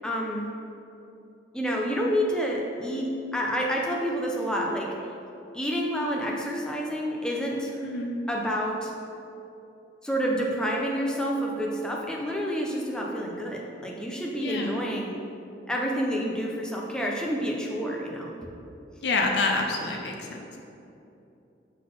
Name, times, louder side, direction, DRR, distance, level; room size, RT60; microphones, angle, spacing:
voice 1, 0.0-0.5 1.5-4.9 5.5-7.8 8.3-8.9 10.0-15.2 15.7-18.3, equal, 5° left, -2 dB, 0.6 m, -29 dB
voice 2, 7.8-8.1 14.4-14.8 19.0-20.6, left 3 dB, 70° left, 1 dB, 0.6 m, -27 dB
5.8 x 3.8 x 5.2 m, 2.8 s
head